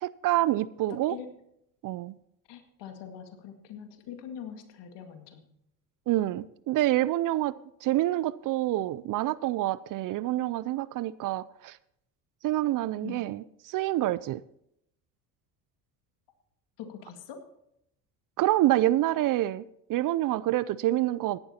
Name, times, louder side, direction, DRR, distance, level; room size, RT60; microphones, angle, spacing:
voice 1, 0.0-1.2 1.8-2.1 6.1-7.5 7.8-11.8 12.4-14.4 18.4-21.4, right 15 dB, 45° right, 0.5 m, -27 dB
voice 2, 0.9-1.3 2.5-5.5 13.0-13.3 16.8-17.4, left 8 dB, 65° left, 2.1 m, -43 dB
16.5 x 11.0 x 2.9 m
hypercardioid pair, 65°, 46 cm